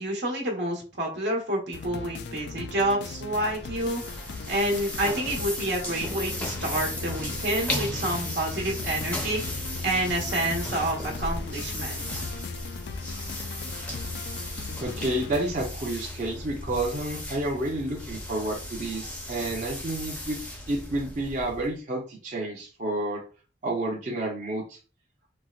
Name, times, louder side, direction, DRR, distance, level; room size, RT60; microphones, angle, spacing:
voice 1, 0.0-12.2, right 1 dB, 85° right, -1 dB, 1.3 m, -29 dB
sound 1, 1.7-15.4, left 5 dB, 65° left, 0.3 m, -40 dB
sound 2, 3.3-21.8, left 1 dB, 10° left, 0.5 m, -36 dB
sound 3, 6.1-21.7, left 3 dB, 85° left, 0.9 m, -41 dB
voice 2, 14.8-20.4 20.7-23.2 23.6-24.8, right 1 dB, 45° right, -3 dB, 0.7 m, -30 dB
4.3 x 2.1 x 2.4 m, 0.34 s
head